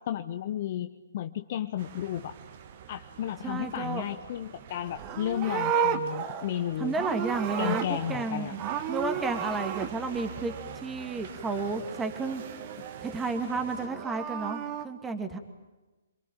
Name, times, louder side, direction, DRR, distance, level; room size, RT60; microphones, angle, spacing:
voice 1, 0.0-2.4 2.9-7.0 7.6-8.6, left 11 dB, 45° left, 8 dB, 1.2 m, -33 dB
sound 1, 1.8-13.9, right 7 dB, 45° right, 2.2 m, -45 dB
voice 2, 3.4-4.0 6.8-8.6 8.9-12.4 13.0-15.4, right 3 dB, 10° right, 6 dB, 2.4 m, -32 dB
Livestock farm animals working animals, 4.9-8.3 8.6-9.9 13.7-14.9, right 8 dB, 30° right, 2.0 m, -32 dB
27.5 x 23.0 x 9.1 m, 1.1 s
figure-of-eight pair, 135°, 0 cm